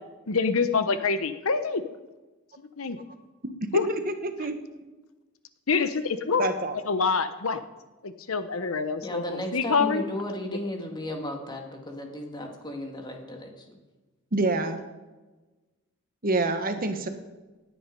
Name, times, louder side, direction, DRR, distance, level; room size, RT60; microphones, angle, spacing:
voice 1, 0.3-1.8 2.8-3.0 3.7-3.8 5.7-6.5 6.9-7.6 8.0-10.0, left 4 dB, 70° left, 11 dB, 0.9 m, -26 dB
voice 2, 3.7-4.5 6.4-6.8 14.3-14.8 16.2-17.1, right 2 dB, 45° right, 7 dB, 1.3 m, -26 dB
voice 3, 9.0-13.8, left 1 dB, 20° left, 2 dB, 2.1 m, -35 dB
18.0 x 9.6 x 5.4 m, 1.2 s
head